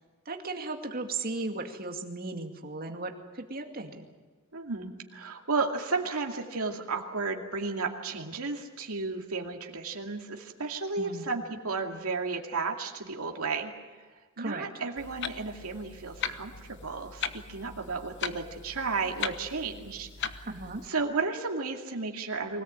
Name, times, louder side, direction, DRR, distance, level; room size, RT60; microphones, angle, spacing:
voice 1, 0.3-4.0 11.0-11.2 14.4-14.7 20.5-20.8, right 3 dB, 45° right, 4 dB, 2.3 m, -36 dB
voice 2, 4.5-13.7 14.4-20.5 20.8-22.6, right 4 dB, 90° right, 2 dB, 2.4 m, -33 dB
Clock, 15.0-20.9, left 7 dB, 55° left, 1.1 m, -39 dB
24.0 x 18.0 x 8.8 m, 1.4 s
head